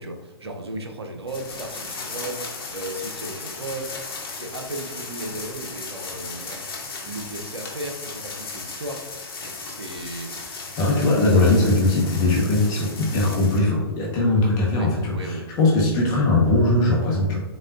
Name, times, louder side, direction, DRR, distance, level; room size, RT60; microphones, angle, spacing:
voice 1, 0.0-6.6 7.0-10.7 14.7-15.5, right 1 dB, 90° right, 4 dB, 0.7 m, -35 dB
sound 1, 1.3-13.6, left 4 dB, 65° left, 1.0 m, -36 dB
voice 2, 10.8-17.4, left 2 dB, 30° left, -3 dB, 1.1 m, -20 dB
4.1 x 3.6 x 2.5 m, 1.2 s
hypercardioid pair, 120°, 13 cm